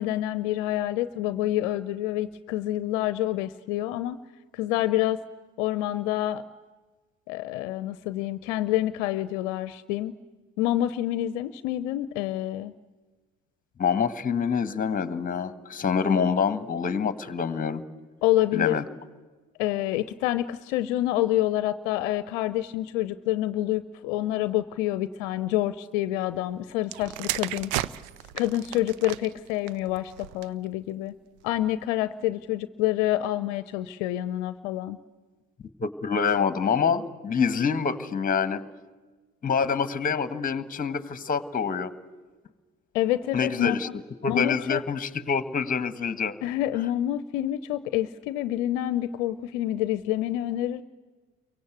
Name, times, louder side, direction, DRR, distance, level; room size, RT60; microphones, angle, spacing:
voice 1, 0.0-4.2 4.5-5.2 5.6-6.4 7.3-10.1 10.6-12.7 18.2-18.8 19.6-27.7 28.3-31.1 31.4-35.0 42.9-43.9 44.3-44.8 46.4-50.8, left 14 dB, 60° left, 14 dB, 0.8 m, -27 dB
voice 2, 13.8-17.8 18.5-18.8 35.8-38.6 39.4-41.9 43.3-43.9 44.2-46.4, left 6 dB, 20° left, 13 dB, 1.6 m, -26 dB
sound 1, 26.8-30.7 31.5-31.7, right 14 dB, 55° right, 0.8 m, -34 dB
29.5 x 23.5 x 8.2 m, 1.3 s
figure-of-eight pair, 55°, 40 cm